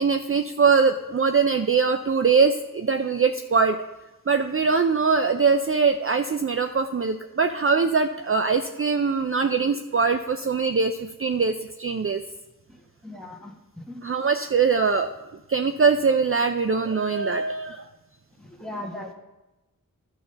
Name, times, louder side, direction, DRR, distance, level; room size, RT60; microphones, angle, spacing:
voice 1, 0.0-3.8 4.3-12.2 14.0-15.1 15.5-17.9, right 5 dB, 40° right, 7 dB, 0.4 m, -22 dB
voice 2, 13.0-14.0 18.4-19.1, left 1 dB, ahead, 0 dB, 1.4 m, -38 dB
12.0 x 4.2 x 6.5 m, 1.0 s
wide cardioid pair, 60°, 34 cm